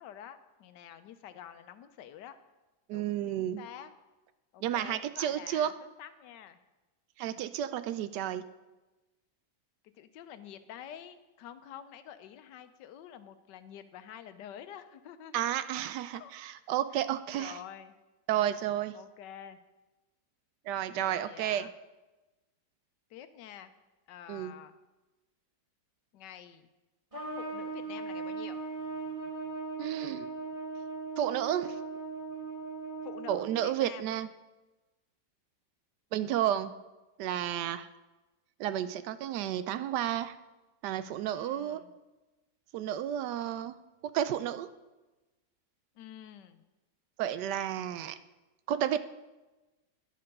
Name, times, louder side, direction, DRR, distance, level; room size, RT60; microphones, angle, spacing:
voice 1, 0.0-2.4 2.9-3.9 4.5-5.7 6.0-6.6 10.0-15.4 16.1-16.3 17.3-18.0 18.9-19.6 20.9-21.7 23.1-23.7 24.1-24.7 26.1-26.7 27.4-28.6 33.0-34.0 41.3-41.9 46.0-46.6, left 10 dB, 85° left, 11 dB, 1.3 m, -48 dB
voice 2, 2.9-3.6 4.6-5.7 7.2-8.4 15.3-17.6 18.3-18.9 20.7-21.7 24.3-24.5 29.8-30.3 31.2-31.8 33.3-34.3 36.1-36.7 37.2-37.9 38.6-40.3 40.8-41.8 42.7-43.7 44.1-44.7 47.2-48.2 48.7-49.0, right 11 dB, 80° right, 13 dB, 1.2 m, -31 dB
Trumpet, 27.1-33.6, right 4 dB, 20° right, 2.2 m, -39 dB
11.0 x 6.6 x 5.3 m, 1.1 s
omnidirectional pair, 1.8 m